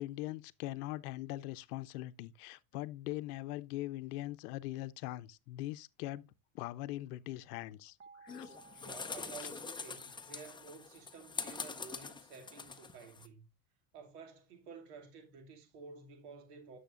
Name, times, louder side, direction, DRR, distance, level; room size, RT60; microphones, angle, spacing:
voice 1, 0.0-6.2 6.5-8.8, left 16 dB, 80° left, 0.7 m, -41 dB
sound 1, 8.0-11.0, right 5 dB, 25° right, 1.2 m, -61 dB
sound 2, 8.3-13.3, left 4 dB, 10° left, 0.6 m, -44 dB
voice 2, 8.7-13.5 13.9-16.8, right 5 dB, 85° right, 2.5 m, -52 dB
10.5 x 7.1 x 2.5 m
supercardioid pair, 115°, 45 cm